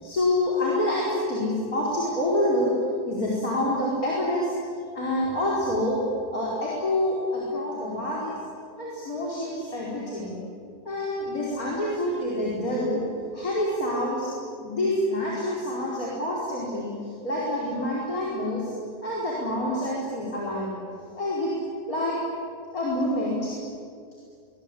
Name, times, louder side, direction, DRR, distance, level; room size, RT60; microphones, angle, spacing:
voice 1, 0.0-2.7 3.1-4.5 5.0-6.0 6.3-8.4 8.8-10.3 10.9-13.0 13.3-18.7 19.0-20.7 21.1-21.5 21.9-22.2 22.7-23.5, left 1 dB, 55° left, -5 dB, 5.3 m, -27 dB
24.5 x 22.0 x 8.6 m, 2.3 s
omnidirectional pair, 1.8 m